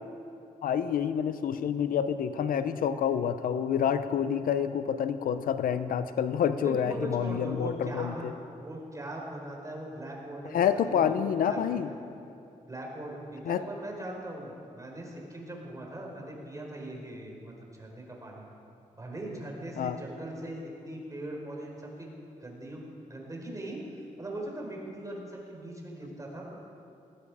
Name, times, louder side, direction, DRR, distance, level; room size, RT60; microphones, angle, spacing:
voice 1, 0.6-8.3 10.5-11.9 13.5-13.6 19.8-20.0, left 8 dB, 85° left, 11 dB, 0.7 m, -28 dB
voice 2, 6.6-12.0 12.6-18.5 18.9-22.1 22.4-22.8 23.1-26.6, right 1 dB, 25° right, -1 dB, 4.8 m, -40 dB
19.5 x 15.0 x 4.9 m, 2.8 s
cardioid pair, 70°, 14 cm